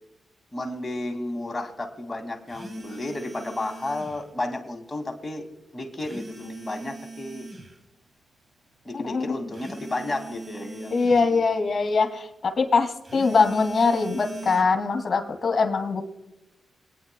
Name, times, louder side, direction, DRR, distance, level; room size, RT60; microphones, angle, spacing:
voice 1, 0.5-5.5 5.7-7.5 8.8-10.9 11.2-11.4, left 2 dB, 25° left, 3 dB, 2.2 m, -32 dB
sound 1, 2.5-4.2 6.0-7.7 9.5-11.2 13.0-14.6, right 3 dB, 35° right, 2.3 m, -40 dB
voice 2, 10.9-16.0, left 4 dB, 50° left, 6 dB, 2.3 m, -22 dB
26.5 x 9.2 x 2.2 m, 0.95 s
supercardioid pair, 50°, 0 cm